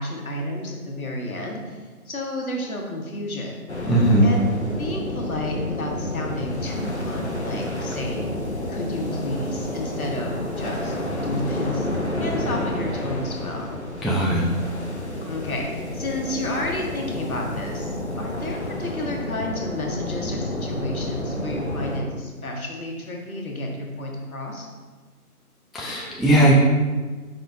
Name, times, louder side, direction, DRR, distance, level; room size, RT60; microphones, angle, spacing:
voice 1, 0.0-3.6 4.2-4.4 4.8-8.3 8.7-11.0 11.2-11.9 12.2-13.7 15.3-24.7, left 1 dB, 65° left, 0 dB, 1.0 m, -31 dB
sound 1, 3.7-22.0, left 1 dB, 50° left, 0.6 m, -30 dB
voice 2, 3.9-4.3 14.0-14.4 25.7-26.5, right 1 dB, ahead, -5 dB, 0.4 m, -18 dB
4.8 x 3.9 x 2.2 m, 1.4 s
figure-of-eight pair, 180°, 46 cm